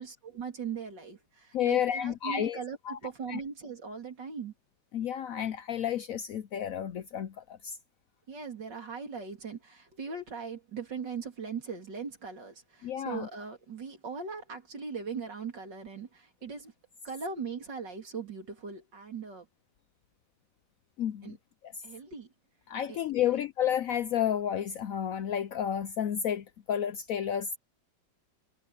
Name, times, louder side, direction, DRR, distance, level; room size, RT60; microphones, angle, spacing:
voice 1, 0.0-4.5 8.3-16.7 17.0-19.5 21.2-21.4 21.8-22.3 22.9-23.0 23.3-23.4, right 5 dB, 75° right, 3.9 m, -39 dB
voice 2, 1.5-2.6 2.9-3.0 3.3-3.4 4.9-7.8 12.8-13.3 21.0-21.4 22.7-27.6, left 9 dB, 65° left, 0.9 m, -31 dB
omnidirectional pair, 1.9 m